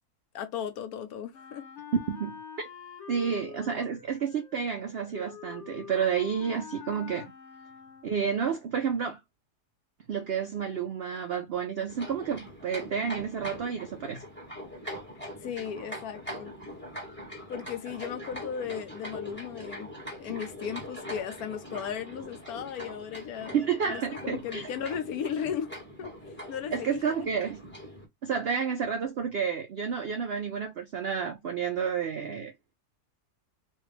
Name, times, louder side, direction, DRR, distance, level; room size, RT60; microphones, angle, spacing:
voice 1, 0.3-1.7 15.4-16.5 17.5-19.9 20.2-25.7 26.0-26.1 26.5-27.0, left 8 dB, 70° left, 1.1 m, -36 dB
Wind instrument woodwind instrument, 1.3-8.3, left 7 dB, 50° left, 1.2 m, -46 dB
voice 2, 2.1-2.7 3.1-7.3 8.0-9.2 10.1-14.2 23.5-24.7 26.7-27.6 28.2-32.5, right 7 dB, 85° right, 0.5 m, -30 dB
sound 1, 11.9-28.1, equal, 10° left, 1.1 m, -42 dB
3.2 x 2.4 x 3.1 m
omnidirectional pair, 1.7 m